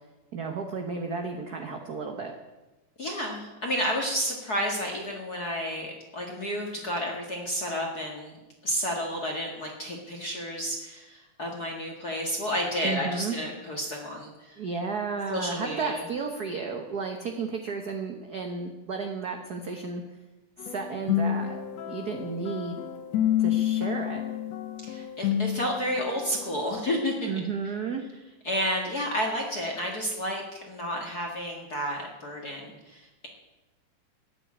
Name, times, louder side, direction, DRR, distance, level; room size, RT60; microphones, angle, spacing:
voice 1, 0.3-2.3 12.8-13.3 14.6-20.0 20.6-21.6 21.9-22.8 23.4-24.2 27.3-28.0, right 5 dB, 55° right, 3 dB, 1.1 m, -33 dB
voice 2, 3.0-8.4 8.6-14.6 15.3-16.0 24.9-27.3 28.4-33.3, equal, 35° left, 0 dB, 2.0 m, -31 dB
sound 1, 20.6-26.6, left 10 dB, 70° left, 2.1 m, -29 dB
15.0 x 10.0 x 8.6 m, 1.1 s
omnidirectional pair, 3.4 m